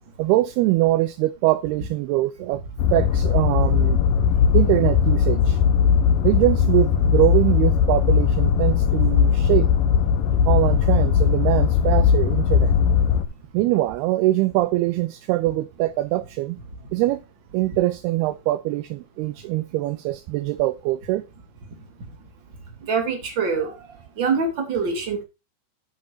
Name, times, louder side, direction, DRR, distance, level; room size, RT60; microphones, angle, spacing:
voice 1, 0.2-2.6 2.9-4.0 4.5-5.6 6.2-9.7 10.5-12.7 13.5-16.6 16.9-17.2 17.5-21.2, right 17 dB, 80° right, 2.5 m, -23 dB
sound 1, 2.8-13.2, left 7 dB, 70° left, 2.3 m, -19 dB
voice 2, 22.9-23.7 24.2-25.2, right 5 dB, 30° right, 3.0 m, -24 dB
11.5 x 9.4 x 2.6 m
omnidirectional pair, 4.8 m